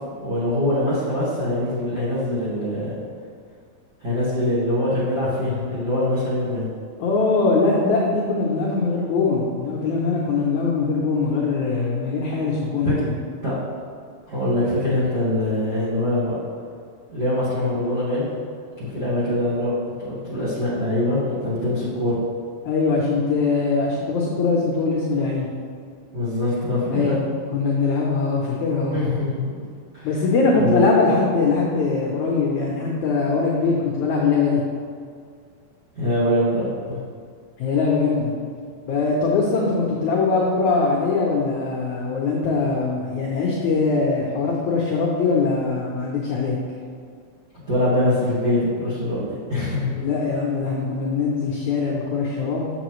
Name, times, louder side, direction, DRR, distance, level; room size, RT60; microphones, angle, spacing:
voice 1, 0.2-3.0 4.0-6.7 12.8-12.9 13.4-13.6 14.3-16.4 17.1-18.3 18.8-22.2 26.1-27.2 28.9-29.4 29.9-30.1 30.5-30.9 35.9-37.0 47.7-49.9, left 1 dB, 45° right, -9 dB, 1.4 m, -23 dB
voice 2, 7.0-13.1 22.7-25.5 26.9-27.2 27.5-29.0 30.0-34.6 37.6-38.3 38.9-46.6 50.0-52.7, left 4 dB, 90° left, -3 dB, 1.6 m, -22 dB
7.5 x 7.0 x 3.1 m, 2.1 s
omnidirectional pair, 4.5 m